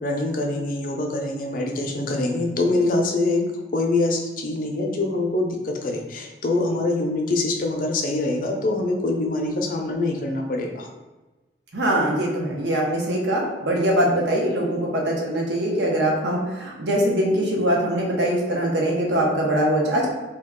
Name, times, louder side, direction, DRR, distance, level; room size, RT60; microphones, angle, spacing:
voice 1, 0.0-3.4 3.7-10.9, left 2 dB, 50° left, 1 dB, 0.5 m, -24 dB
voice 2, 11.7-20.1, right 1 dB, 85° right, -2 dB, 0.8 m, -22 dB
2.8 x 2.3 x 3.6 m, 1.2 s
head